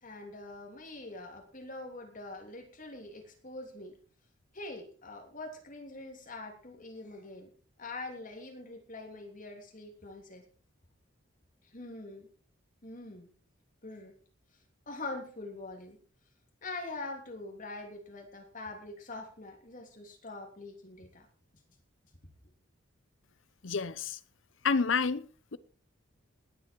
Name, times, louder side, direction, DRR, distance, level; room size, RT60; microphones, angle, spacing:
voice 1, 0.0-3.9 4.5-7.5 7.8-10.4 11.7-12.3 12.8-13.3 13.8-14.1 14.9-16.0 16.6-21.3, left 2 dB, 40° left, 3.2 m, -44 dB
voice 2, 23.6-24.2 24.6-25.6, left 5 dB, 70° left, 0.7 m, -29 dB
19.5 x 8.4 x 4.6 m
head